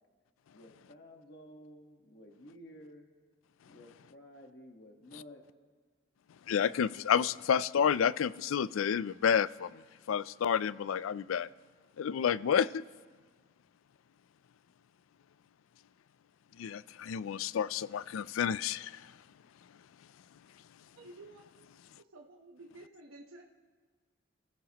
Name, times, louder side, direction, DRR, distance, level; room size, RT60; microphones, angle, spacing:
voice 1, 0.5-3.1 3.6-5.4, equal, 50° left, 1.4 m, -53 dB
voice 2, 6.5-11.5 12.0-12.8 16.6-19.1, left 8 dB, 85° left, 0.4 m, -30 dB
voice 3, 21.0-21.4 22.0-23.4, right 2 dB, 90° right, 1.1 m, -52 dB
28.5 x 15.5 x 3.0 m
head